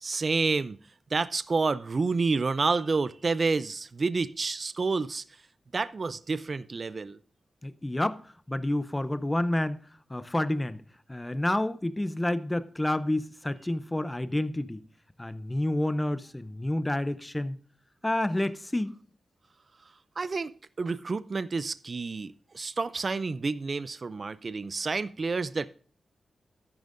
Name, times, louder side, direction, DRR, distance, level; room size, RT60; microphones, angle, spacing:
voice 1, 0.0-0.8 1.1-5.2 5.7-7.2 20.2-25.7, right 4 dB, 40° right, 0.4 m, -29 dB
voice 2, 7.6-9.8 10.1-10.8 11.1-14.8 15.2-17.6 18.0-18.9, left 1 dB, 15° left, 0.5 m, -29 dB
13.0 x 10.5 x 2.5 m
wide cardioid pair, 115°, 0 cm